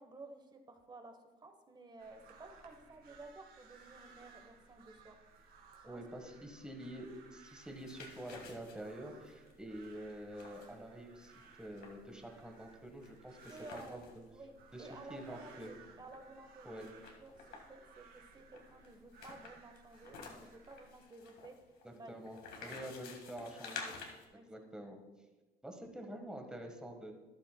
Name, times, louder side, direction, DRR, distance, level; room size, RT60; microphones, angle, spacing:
voice 1, 0.0-5.2 5.8-6.0 13.5-14.0 14.3-14.5 14.8-16.9 17.2-17.3 17.7-21.5 21.9-22.1 22.6-22.9 24.3-24.6 26.1-26.2, right 2 dB, 25° right, 6 dB, 1.1 m, -53 dB
sound 1, 2.0-21.0, right 5 dB, 65° right, 2.0 m, -61 dB
voice 2, 5.9-11.3 11.6-14.2 14.7-15.7 16.6-16.9 21.8-22.4 22.6-24.0 24.5-25.0 25.6-27.1, right 1 dB, 5° right, 3 dB, 1.4 m, -47 dB
sound 2, 7.5-14.2 14.6-14.7 14.9-16.2 16.8-17.8 18.5-24.3, left 5 dB, 70° left, 1.9 m, -51 dB
13.0 x 11.5 x 2.3 m, 1.2 s
cardioid pair, 110°, 17 cm